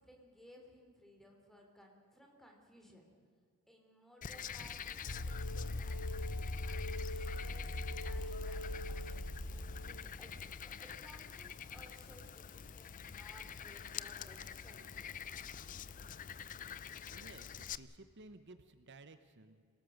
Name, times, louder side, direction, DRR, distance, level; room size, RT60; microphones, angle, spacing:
voice 1, 0.0-3.0 3.7-9.3 9.8-15.2, equal, ahead, 1 dB, 3.4 m, -61 dB
Frog, 4.2-17.8, left 7 dB, 35° left, 0.5 m, -47 dB
sound 1, 5.1-10.0, left 1 dB, 80° left, 1.1 m, -40 dB
sound 2, 8.0-12.8, equal, 60° left, 2.5 m, -62 dB
voice 2, 17.1-19.6, right 2 dB, 50° right, 10 dB, 0.9 m, -56 dB
27.5 x 18.5 x 6.5 m, 2.3 s
head